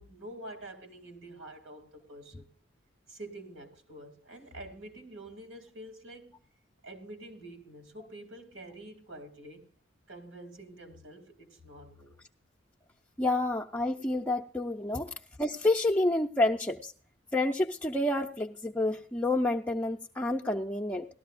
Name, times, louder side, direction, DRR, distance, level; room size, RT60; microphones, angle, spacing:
voice 1, 0.0-2.5 3.1-6.4 6.8-9.7 10.1-12.1, right 1 dB, 80° right, 2.7 m, -47 dB
voice 2, 13.2-15.1 15.4-16.9 17.3-21.1, left 2 dB, 10° left, 0.5 m, -29 dB
18.0 x 13.0 x 2.5 m
head